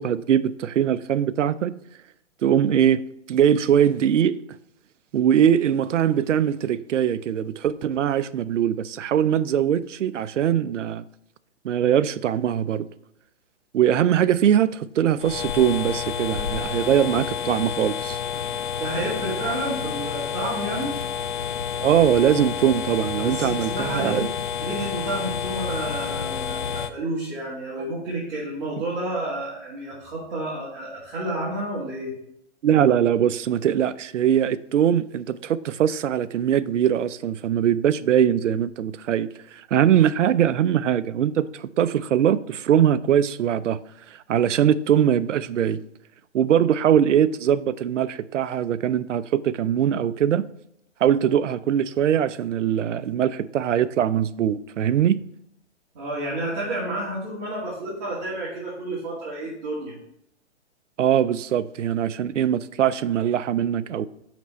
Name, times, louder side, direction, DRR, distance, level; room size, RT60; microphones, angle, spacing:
voice 1, 0.0-1.7 2.4-3.0 3.3-4.4 5.1-11.0 11.6-12.9 13.7-18.2 21.8-24.3 32.6-43.8 44.1-45.8 46.3-50.5 51.0-55.2 61.0-64.1, right 9 dB, 90° right, 0.5 m, -21 dB
sound 1, 15.2-26.9, left 7 dB, 45° left, 0.4 m, -29 dB
voice 2, 18.8-20.9 23.2-24.2 24.6-32.1 55.9-59.9, right 1 dB, 35° right, 2.4 m, -30 dB
6.0 x 5.8 x 4.3 m
hypercardioid pair, 160°, 36 cm